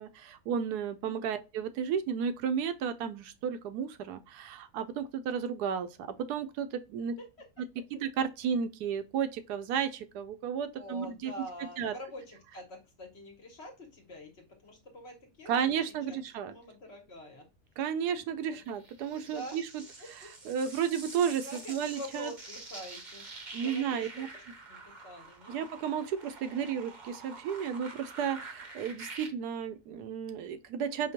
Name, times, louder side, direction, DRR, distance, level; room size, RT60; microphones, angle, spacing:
voice 1, 0.0-7.1 8.0-11.3 11.8-11.9 15.5-16.6 17.8-19.8 20.2-22.3 23.5-24.3 25.5-31.1, right 7 dB, 85° right, 1.1 m, -33 dB
voice 2, 10.7-17.5 18.5-18.7 19.2-20.5 21.4-23.3 23.6-24.4 24.7-25.6, equal, 50° left, 1.0 m, -46 dB
sound 1, 18.7-29.3, right 3 dB, 40° right, 0.7 m, -47 dB
5.1 x 2.2 x 2.8 m
omnidirectional pair, 1.7 m